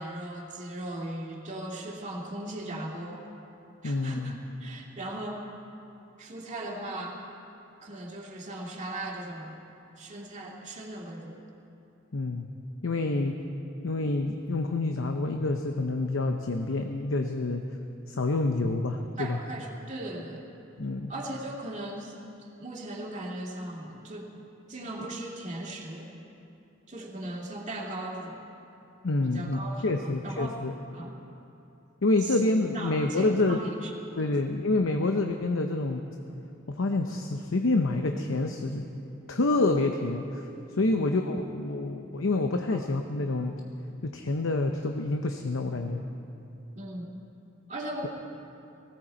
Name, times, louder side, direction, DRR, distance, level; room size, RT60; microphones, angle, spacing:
voice 1, 0.0-3.3 3.8-5.4 6.2-7.2 7.8-9.6 10.0-11.4 19.2-20.4 21.1-24.3 24.7-26.1 26.9-28.5 29.2-30.6 30.9-31.2 32.2-32.4 32.7-33.9 34.2-34.4 40.9-41.2 42.7-42.8 46.7-47.1 47.7-48.1, right 1 dB, 40° right, -2 dB, 2.3 m, -38 dB
voice 2, 3.8-4.3 12.1-12.5 12.8-13.4 13.8-17.6 18.1-19.4 20.8-21.1 29.0-30.7 32.0-33.6 34.2-36.0 36.7-38.8 39.3-40.5 40.8-43.6 44.0-46.0, left 2 dB, 80° left, 5 dB, 0.8 m, -27 dB
19.5 x 16.5 x 4.4 m, 2.8 s
head